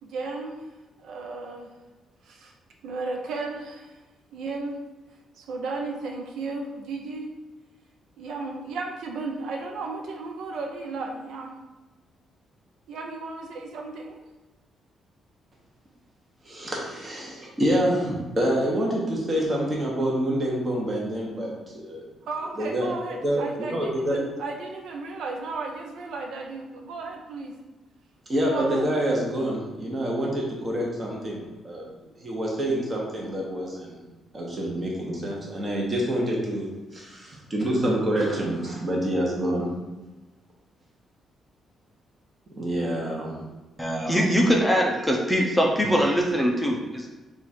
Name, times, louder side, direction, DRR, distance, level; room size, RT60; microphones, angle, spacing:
voice 1, 0.0-0.7 1.0-1.7 2.2-2.5 2.8-4.0 4.3-4.8 5.3-7.3 8.2-11.6 12.9-14.2 22.2-27.5 28.4-28.9, right 3 dB, 75° right, 1 dB, 0.6 m, -34 dB
voice 2, 16.4-22.1 22.6-22.9 23.2-24.2 28.3-34.0 34.3-39.7 42.6-43.4 44.0-44.1, right 1 dB, 25° right, -3 dB, 1.1 m, -27 dB
voice 3, 43.8-47.1, equal, 5° left, -1 dB, 0.5 m, -22 dB
4.3 x 2.5 x 4.2 m, 1.1 s
cardioid pair, 140°, 0 cm